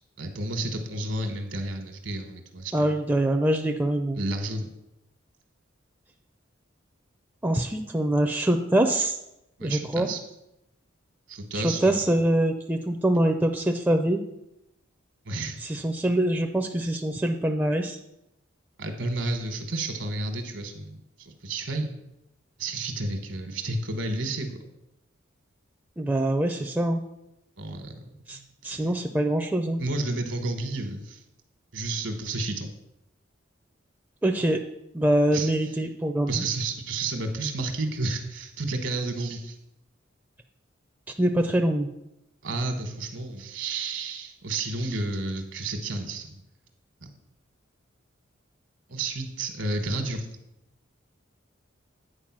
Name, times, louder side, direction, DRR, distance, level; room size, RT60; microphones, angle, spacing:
voice 1, 0.2-2.9 4.1-4.7 9.6-10.2 11.3-12.2 15.2-15.6 18.8-21.9 22.6-24.5 27.6-28.0 28.3-28.9 29.8-31.2 31.7-32.7 35.3-35.5 36.3-39.6 42.4-46.4 48.9-50.3, right 2 dB, 70° right, 6 dB, 1.2 m, -31 dB
voice 2, 2.7-4.2 7.4-9.1 9.6-10.1 11.5-14.2 15.6-18.0 26.0-27.0 28.3-28.4 28.6-29.8 34.2-34.6 34.9-36.4 41.2-41.9, right 1 dB, 10° right, 4 dB, 0.4 m, -24 dB
8.8 x 4.5 x 5.9 m, 0.85 s
head